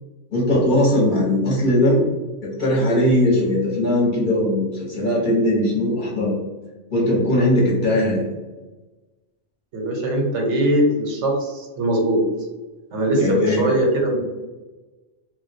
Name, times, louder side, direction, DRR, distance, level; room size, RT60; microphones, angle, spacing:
voice 1, 0.3-2.0 2.4-6.3 6.9-8.3 13.2-13.6, left 1 dB, 45° left, -4 dB, 0.8 m, -19 dB
voice 2, 9.7-12.2 12.9-14.2, right 1 dB, 75° right, 1 dB, 1.1 m, -21 dB
2.3 x 2.2 x 3.9 m, 1.2 s
omnidirectional pair, 1.3 m